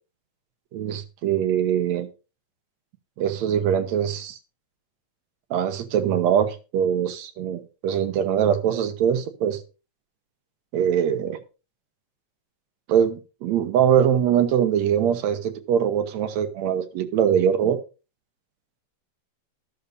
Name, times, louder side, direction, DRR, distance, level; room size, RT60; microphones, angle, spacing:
voice 1, 0.7-2.1 3.2-4.4 5.5-9.6 10.7-11.4 12.9-17.8, right 9 dB, 75° right, 7 dB, 2.3 m, -22 dB
14.0 x 12.0 x 2.6 m, 0.31 s
omnidirectional pair, 3.3 m